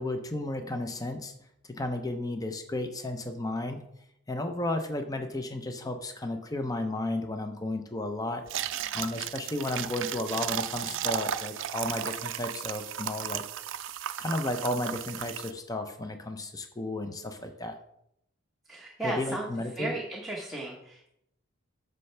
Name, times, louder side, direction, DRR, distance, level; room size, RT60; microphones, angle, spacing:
voice 1, 0.0-1.3 1.6-3.8 4.3-8.4 8.9-13.4 14.2-17.8 19.0-19.9, left 1 dB, 15° left, 6 dB, 0.6 m, -33 dB
sound 1, 8.5-15.5, right 9 dB, 60° right, 0.4 m, -35 dB
voice 2, 18.7-19.5 19.7-21.1, right 1 dB, ahead, -3 dB, 1.0 m, -35 dB
9.9 x 6.6 x 3.3 m, 0.77 s
head